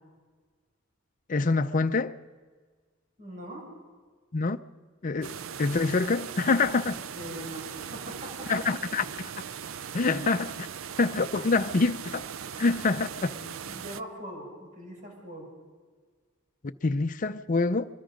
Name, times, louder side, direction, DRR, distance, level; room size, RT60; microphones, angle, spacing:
voice 1, 1.3-2.2 4.3-4.6 5.0-7.0 8.5-9.3 9.9-10.5 11.0-12.3 12.6-13.3 16.8-17.9, left 3 dB, 40° left, 0.6 m, -26 dB
voice 2, 3.2-3.7 7.1-8.6 10.1-10.3 13.2-15.5, equal, 40° right, 6.8 m, -42 dB
sound 1, 5.2-14.0, right 8 dB, 75° right, 0.5 m, -39 dB
23.5 x 22.0 x 5.2 m
head